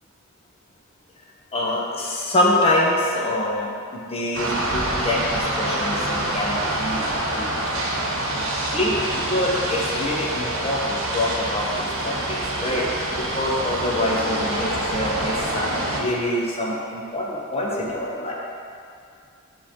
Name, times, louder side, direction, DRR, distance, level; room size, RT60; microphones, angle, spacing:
voice 1, 1.5-7.7 8.3-8.5 8.7-12.9 13.2-18.3, left 1 dB, 25° left, -3 dB, 0.8 m, -25 dB
sound 1, 4.3-16.0, right 1 dB, 65° right, 1.0 m, -26 dB
7.4 x 3.7 x 4.4 m, 2.4 s
head